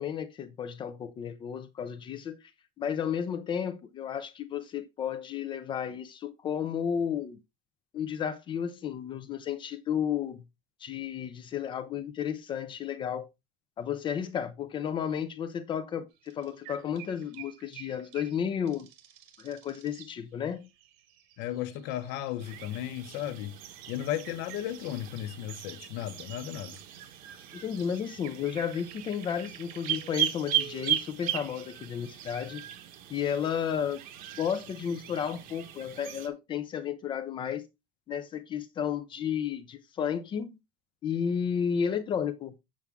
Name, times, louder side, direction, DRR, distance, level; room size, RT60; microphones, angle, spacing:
voice 1, 0.0-2.5 2.8-7.4 7.9-10.4 10.8-13.3 13.8-18.9 19.4-20.7 27.5-32.6 33.1-34.0 34.4-37.6 38.1-40.6 41.0-42.5, left 8 dB, 25° left, 0.6 m, -32 dB
sound 1, 16.1-32.5, right 11 dB, 70° right, 1.8 m, -53 dB
voice 2, 21.4-23.5 23.9-26.8, left 12 dB, 65° left, 1.0 m, -35 dB
sound 2, 22.4-36.3, right 10 dB, 45° right, 1.1 m, -37 dB
7.3 x 7.1 x 3.5 m
cardioid pair, 180°, 19 cm